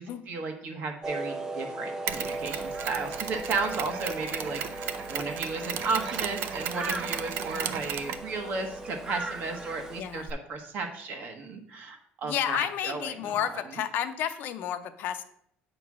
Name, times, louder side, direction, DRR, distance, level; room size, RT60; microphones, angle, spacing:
voice 1, 0.0-13.8, right 4 dB, 50° right, 5 dB, 1.1 m, -34 dB
sound 1, 1.0-10.0, right 2 dB, 15° right, 0.5 m, -37 dB
Mechanisms, 2.1-10.3, right 8 dB, 70° right, 0.5 m, -36 dB
voice 2, 12.2-15.2, left 10 dB, 60° left, 9 dB, 0.6 m, -31 dB
8.2 x 3.0 x 6.0 m, 0.68 s
cardioid pair, 165°, 4 cm